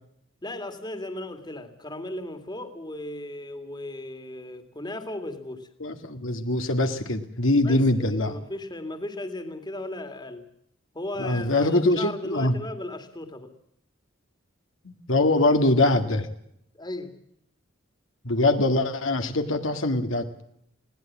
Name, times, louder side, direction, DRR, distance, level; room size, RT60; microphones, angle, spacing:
voice 1, 0.4-5.7 7.6-10.5 10.9-13.5 16.7-17.2, left 1 dB, 20° left, 8 dB, 2.3 m, -36 dB
voice 2, 5.8-8.4 11.2-12.5 14.8-16.3 18.2-20.4, left 2 dB, 75° left, 6 dB, 2.1 m, -23 dB
21.0 x 17.5 x 7.4 m, 0.73 s
head